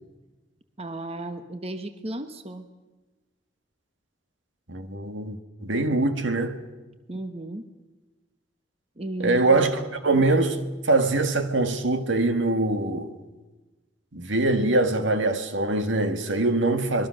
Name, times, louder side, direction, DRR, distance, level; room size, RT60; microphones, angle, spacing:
voice 1, 0.8-2.7 7.1-7.7 9.0-9.7, right 1 dB, 30° right, 1.2 m, -34 dB
voice 2, 4.7-6.6 9.2-13.1 14.1-17.1, right 2 dB, 80° right, 1.9 m, -23 dB
25.5 x 22.0 x 6.5 m
head